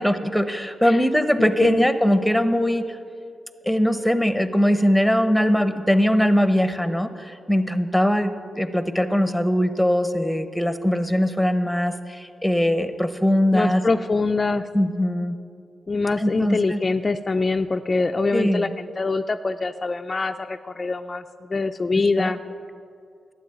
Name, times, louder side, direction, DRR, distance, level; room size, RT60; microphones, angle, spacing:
voice 1, 0.0-2.8 3.7-13.8 14.7-15.4 16.2-16.8 18.3-18.7 21.9-22.3, equal, ahead, 10 dB, 1.0 m, -21 dB
voice 2, 1.4-1.9 13.5-14.7 15.9-21.2 21.5-22.4, left 3 dB, 35° left, 7 dB, 0.4 m, -24 dB
12.0 x 9.4 x 9.1 m, 2.4 s
cardioid pair, 70°, 0 cm